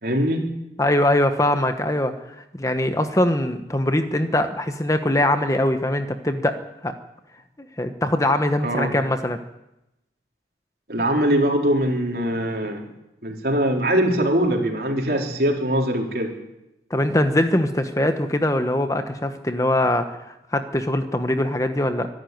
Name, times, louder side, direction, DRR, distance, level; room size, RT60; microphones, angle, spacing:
voice 1, 0.0-0.4 8.6-8.9 10.9-12.9 13.2-16.3, right 1 dB, 60° right, 1 dB, 4.0 m, -22 dB
voice 2, 0.8-2.1 2.5-6.5 6.8-6.9 7.8-9.4 16.9-22.1, left 1 dB, 20° left, 8 dB, 1.1 m, -22 dB
24.0 x 12.0 x 9.4 m, 0.90 s
head